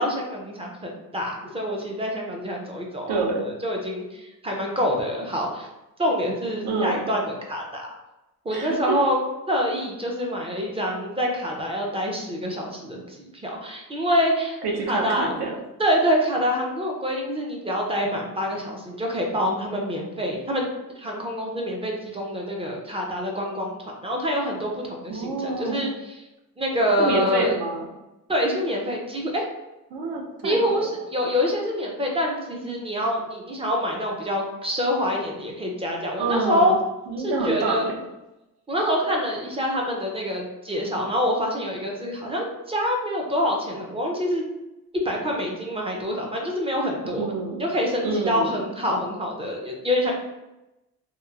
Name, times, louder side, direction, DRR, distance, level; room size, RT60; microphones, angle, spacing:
voice 1, 0.0-5.7 6.0-7.9 8.4-9.2 9.5-14.6 14.9-15.3 15.8-20.7 21.0-26.3 26.6-27.5 28.3-29.4 30.4-36.7 37.2-37.9 38.7-44.4 44.9-47.3 47.6-50.1, equal, 15° right, 0 dB, 0.4 m, -26 dB
voice 2, 3.1-3.5 6.6-7.1 8.5-9.0 14.6-15.5 25.1-25.9 27.0-27.9 29.9-30.9 36.2-36.8 37.1-37.9 47.1-47.6 48.0-48.5, right 3 dB, 70° right, 0 dB, 0.7 m, -27 dB
2.9 x 2.0 x 2.3 m, 0.96 s
cardioid pair, 115°, 39 cm